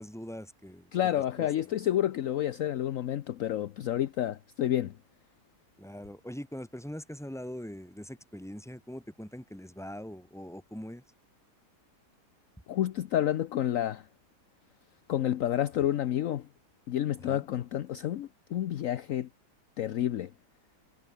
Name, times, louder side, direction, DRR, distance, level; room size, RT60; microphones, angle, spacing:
voice 1, 0.0-0.9 1.4-1.5 5.8-11.0 17.2-17.4, equal, ahead, 3.0 m, -42 dB
voice 2, 0.9-4.9 12.7-14.1 15.1-16.5 16.9-19.3 19.8-20.3, left 11 dB, 65° left, 1.0 m, -29 dB
omnidirectional pair, 1.7 m